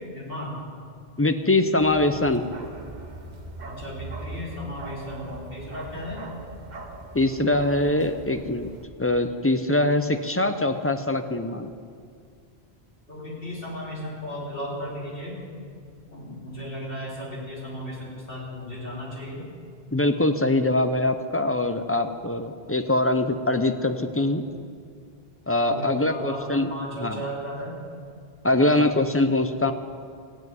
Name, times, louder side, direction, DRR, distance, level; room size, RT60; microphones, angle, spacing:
voice 1, 0.1-0.5 3.6-6.2 13.1-15.4 16.1-19.4 25.7-27.8 28.5-28.9, equal, 60° left, -6 dB, 4.0 m, -35 dB
voice 2, 1.2-2.5 7.1-8.7 9.0-11.7 19.9-24.5 25.5-26.7 27.0-27.2 28.4-29.7, left 2 dB, 20° left, 8 dB, 0.4 m, -23 dB
Bark, 1.8-8.8, right 3 dB, 45° right, 1.0 m, -40 dB
15.5 x 5.6 x 9.4 m, 2.2 s
omnidirectional pair, 1.1 m